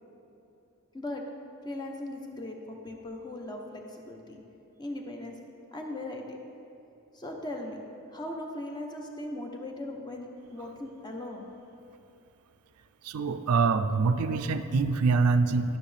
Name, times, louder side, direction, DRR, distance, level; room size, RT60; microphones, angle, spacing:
voice 1, 0.9-1.2 1.6-4.4 4.8-5.3 5.7-6.4 7.1-7.8 8.1-11.5, left 1 dB, 20° left, 2 dB, 0.7 m, -38 dB
voice 2, 13.0-15.8, right 4 dB, 90° right, 10 dB, 0.4 m, -25 dB
11.5 x 6.2 x 3.3 m, 2.9 s
head